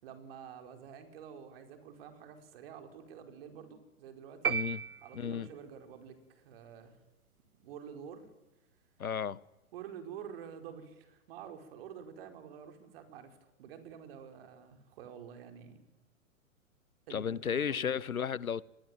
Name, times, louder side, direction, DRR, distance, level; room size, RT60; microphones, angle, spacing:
voice 1, 0.0-4.5 5.0-6.9 7.6-8.3 9.7-15.8 17.1-17.9, right 8 dB, 40° right, 4.9 m, -48 dB
sound 1, 4.4-5.7, right 6 dB, 85° right, 0.9 m, -34 dB
voice 2, 4.5-4.8 5.1-5.5 9.0-9.4 17.1-18.6, left 7 dB, 75° left, 1.0 m, -33 dB
25.0 x 21.0 x 9.2 m
figure-of-eight pair, 120°, 42 cm